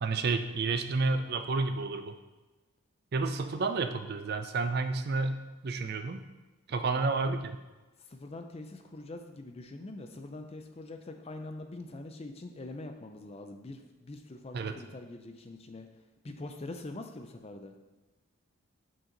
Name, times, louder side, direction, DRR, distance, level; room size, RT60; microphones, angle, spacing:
voice 1, 0.0-2.1 3.1-5.4 5.6-6.2 6.7-7.6 14.5-14.7, right 3 dB, 45° right, 8 dB, 0.4 m, -30 dB
voice 2, 8.1-15.9 16.2-17.7, left 2 dB, 25° left, 6 dB, 0.4 m, -44 dB
6.3 x 4.4 x 3.9 m, 1.2 s
head